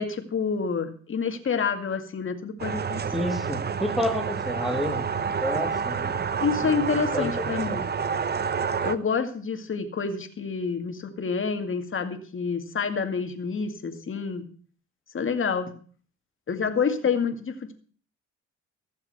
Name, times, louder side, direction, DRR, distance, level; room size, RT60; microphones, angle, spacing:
voice 1, 0.0-3.4 6.4-7.9 8.8-14.4 15.1-15.7 16.5-17.7, left 5 dB, 40° left, 7 dB, 2.2 m, -28 dB
sound 1, 2.6-9.0, right 6 dB, 35° right, 0.8 m, -29 dB
voice 2, 3.1-6.2 6.6-6.8 7.1-7.8, left 1 dB, ahead, 5 dB, 2.6 m, -30 dB
15.5 x 7.1 x 6.8 m, 0.43 s
cardioid pair, 90°, 30 cm